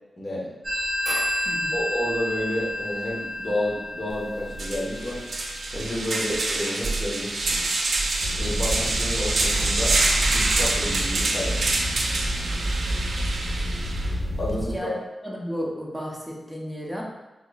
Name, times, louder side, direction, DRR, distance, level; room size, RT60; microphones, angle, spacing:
voice 1, 0.2-0.5 1.7-5.2 5.7-7.7 8.4-10.0 10.3-11.6 14.4-14.9, left 1 dB, 40° left, -5 dB, 1.0 m, -30 dB
Telephone, 0.6-6.0, left 1 dB, 20° right, 1.3 m, -30 dB
voice 2, 1.4-1.8 14.5-15.0 15.2-17.0, equal, ahead, -3 dB, 0.7 m, -33 dB
sound 1, 4.1-4.2 4.5-14.1, right 2 dB, 70° right, 0.5 m, -26 dB
sound 2, 8.2-14.7, equal, 65° left, 1.2 m, -29 dB
3.9 x 2.9 x 2.3 m, 1.1 s
wide cardioid pair, 105°, 0 cm